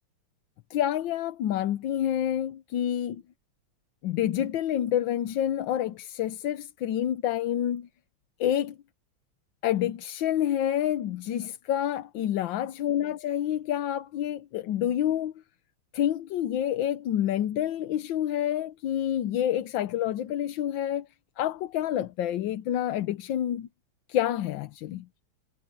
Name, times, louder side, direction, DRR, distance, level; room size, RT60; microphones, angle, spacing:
voice 1, 0.7-3.2 4.0-7.9 8.4-8.7 9.6-15.3 15.9-21.1 21.4-23.7 24.1-25.0, left 11 dB, 70° left, 1.4 m, -28 dB
omnidirectional pair, 2.3 m